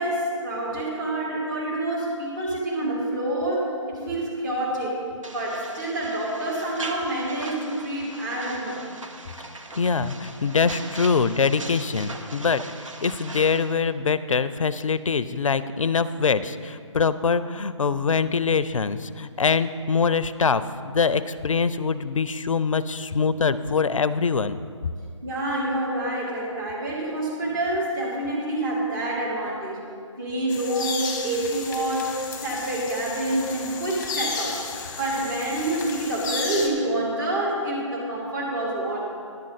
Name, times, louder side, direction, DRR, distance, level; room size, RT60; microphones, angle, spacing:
voice 1, 0.0-5.0 5.3-8.9 25.2-29.8 30.2-34.6 35.0-39.0, right 1 dB, 40° right, -3 dB, 2.6 m, -27 dB
sound 1, 5.2-13.7, right 2 dB, 80° right, 1.1 m, -39 dB
voice 2, 9.8-12.6 13.0-24.6, left 5 dB, 85° left, 15 dB, 0.5 m, -23 dB
Cenote at Ek Balam Yucatan Mexico, 30.5-36.7, left 5 dB, 15° left, 0.9 m, -33 dB
10.5 x 7.5 x 4.0 m, 2.2 s
figure-of-eight pair, 150°, 16 cm